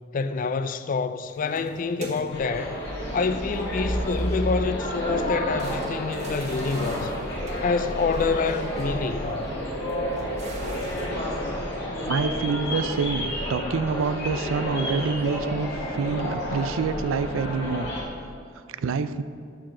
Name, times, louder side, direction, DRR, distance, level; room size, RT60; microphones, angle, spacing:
voice 1, 0.1-2.8 3.1-7.1 7.6-9.4, left 4 dB, 40° left, 0.4 m, -27 dB
sound 1, 1.2-2.6 3.5-4.6 5.0-5.1 5.6-11.1, right 1 dB, 35° right, 1.2 m, -43 dB
sound 2, 2.3-18.0, equal, 60° left, 2.2 m, -30 dB
voice 2, 12.1-17.9 18.8-19.2, right 5 dB, 85° right, 0.4 m, -27 dB
12.0 x 6.7 x 3.8 m
head